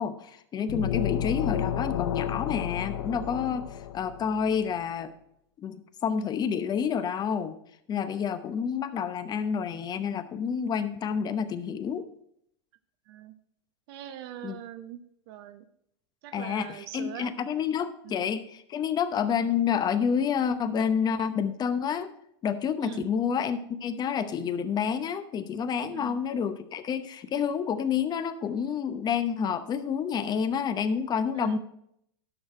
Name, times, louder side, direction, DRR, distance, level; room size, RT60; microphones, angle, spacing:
voice 1, 0.0-3.6 3.9-5.1 5.6-7.5 7.9-12.1 14.4-14.6 16.3-22.1 22.4-31.6, left 7 dB, 30° left, 11 dB, 0.8 m, -29 dB
sound 1, 0.7-4.4, left 10 dB, 70° left, 0.7 m, -31 dB
voice 2, 13.9-15.0 15.3-15.6 16.2-17.4 18.0-18.3 22.8-23.1 25.9-26.2 31.3-31.6, right 12 dB, 55° right, 9 dB, 0.7 m, -41 dB
12.0 x 6.4 x 4.3 m, 0.72 s
hypercardioid pair, 105°, 15 cm